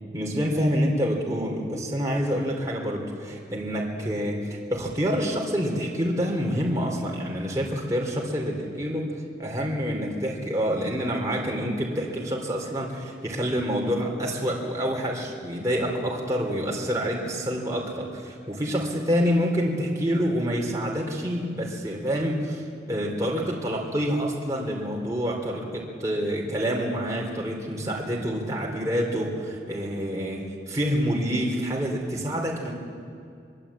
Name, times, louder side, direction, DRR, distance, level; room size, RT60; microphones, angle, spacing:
voice 1, 0.1-9.1 9.4-32.7, equal, 20° right, -2 dB, 3.3 m, -27 dB
24.0 x 23.0 x 8.5 m, 2.5 s
head